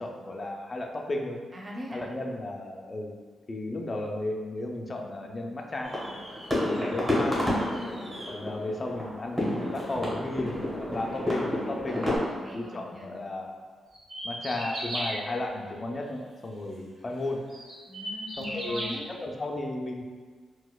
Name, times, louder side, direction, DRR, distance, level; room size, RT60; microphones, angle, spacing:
voice 1, 0.0-1.4 1.9-3.1 3.5-5.9 6.7-7.4 8.3-12.1 12.4-13.5 14.2-17.4 18.4-20.0, left 2 dB, 30° left, 1 dB, 0.3 m, -34 dB
voice 2, 1.5-2.1 7.7-8.1 11.9-13.1 17.9-19.0, equal, 35° right, -2 dB, 0.4 m, -40 dB
sound 1, 5.8-12.2, left 1 dB, 10° right, 0.9 m, -30 dB
sound 2, 13.9-15.2 16.9-17.0 17.5-18.9, right 1 dB, 70° right, 1.1 m, -35 dB
4.0 x 2.2 x 2.3 m, 1.5 s
cardioid pair, 110°, 0 cm